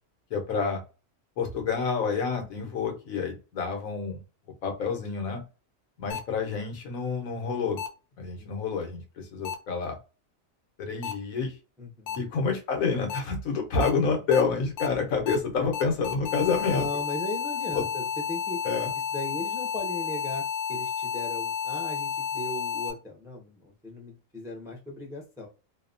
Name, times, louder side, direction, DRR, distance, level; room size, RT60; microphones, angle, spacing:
voice 1, 0.3-0.8 1.4-4.2 4.6-5.4 6.0-7.8 8.2-10.0 10.8-11.5 12.2-16.9 17.7-17.8 18.6-18.9, left 5 dB, 90° left, 3 dB, 1.2 m, -28 dB
sound 1, 6.1-6.2 7.8-7.9 9.4-9.5 11.0-11.1 12.1-12.2 13.1-13.2 13.8-13.9 14.3-14.4 14.8-14.9 15.3-15.4 15.7-22.9, left 7 dB, 65° left, 0.6 m, -31 dB
voice 2, 11.8-12.2 16.7-18.6 19.1-25.5, left 1 dB, 5° right, 0 dB, 0.4 m, -37 dB
2.8 x 2.1 x 2.4 m, 0.32 s
omnidirectional pair, 1.4 m